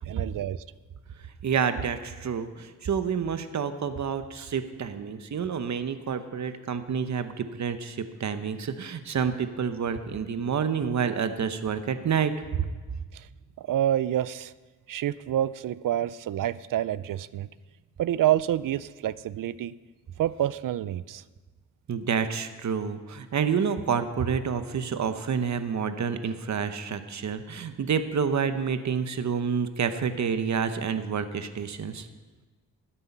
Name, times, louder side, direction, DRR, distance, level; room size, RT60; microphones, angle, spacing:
voice 1, 0.1-0.6 13.1-13.3 13.6-14.5 14.9-17.5 18.0-19.7 20.2-21.2, right 12 dB, 75° right, 18 dB, 0.5 m, -28 dB
voice 2, 1.4-12.7 21.9-32.1, right 6 dB, 60° right, 10 dB, 0.9 m, -28 dB
13.0 x 10.0 x 5.5 m, 1.3 s
wide cardioid pair, 120°, 33 cm